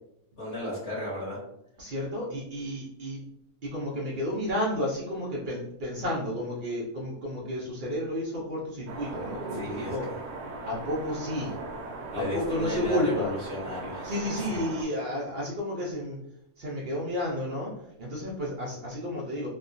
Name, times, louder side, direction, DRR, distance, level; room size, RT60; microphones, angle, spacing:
voice 1, 0.4-1.4 9.5-9.9 12.1-14.6, left 1 dB, 45° left, -7 dB, 1.4 m, -34 dB
voice 2, 1.8-3.3 3.6-10.0 10.6-13.3 14.0-16.2 16.6-19.5, left 1 dB, 70° right, -5 dB, 0.4 m, -32 dB
sound 1, 8.9-14.8, right 3 dB, 90° right, 1.1 m, -38 dB
3.1 x 2.2 x 2.5 m, 0.77 s
omnidirectional pair, 1.6 m